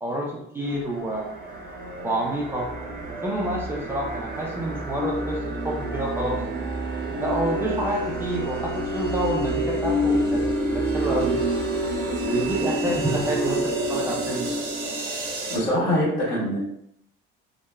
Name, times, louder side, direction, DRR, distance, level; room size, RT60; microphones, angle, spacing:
voice 1, 0.0-1.3 2.0-2.7 3.1-6.5 7.2-10.4 10.7-11.4 12.2-14.6, right 1 dB, 10° right, -3 dB, 0.3 m, -28 dB
sound 1, 0.6-15.6, right 1 dB, 45° right, 0.6 m, -28 dB
voice 2, 15.5-16.6, equal, 70° left, -5 dB, 1.3 m, -23 dB
2.9 x 2.1 x 2.2 m, 0.74 s
cardioid pair, 145°, 21 cm